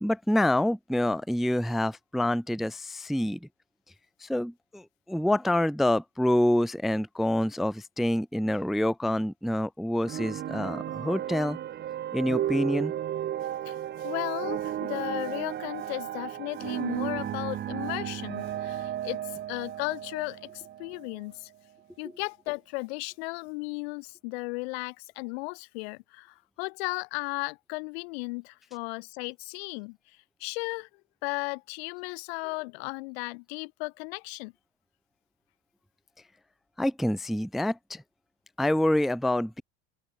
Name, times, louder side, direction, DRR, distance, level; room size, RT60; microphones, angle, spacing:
voice 1, 0.0-3.5 4.2-11.6 12.1-12.9 36.8-38.0 38.6-39.6, left 1 dB, ahead, 0.4 m, -27 dB
sound 1, 10.0-21.3, right 11 dB, 35° right, 1.3 m, -34 dB
voice 2, 13.6-21.5 22.0-30.0 30.4-30.9 31.2-34.5, left 28 dB, 85° left, 2.6 m, -35 dB
open air
cardioid pair, 135°, 30 cm